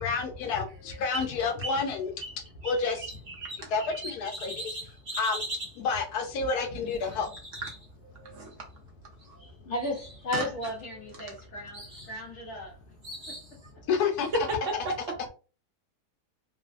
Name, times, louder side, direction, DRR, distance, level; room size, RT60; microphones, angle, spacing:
voice 1, 0.0-2.2 2.6-3.1 3.7-4.8 5.2-5.4 5.8-7.3 13.9-14.3, left 5 dB, 75° left, 1.1 m, -29 dB
sound 1, 0.7-1.8 2.2-5.8 6.9-8.3 9.2-9.5 9.8-10.4 10.6-11.4 11.7-12.1 13.0-13.5, right 1 dB, 35° right, 1.0 m, -40 dB
voice 2, 8.2-8.7 9.2-9.4 10.3-10.5 11.1-11.2 14.5-15.2, right 3 dB, 60° right, 0.9 m, -35 dB
voice 3, 9.6-12.8 13.3-13.4, left 1 dB, 55° left, 0.9 m, -35 dB
3.1 x 2.1 x 2.4 m
omnidirectional pair, 1.7 m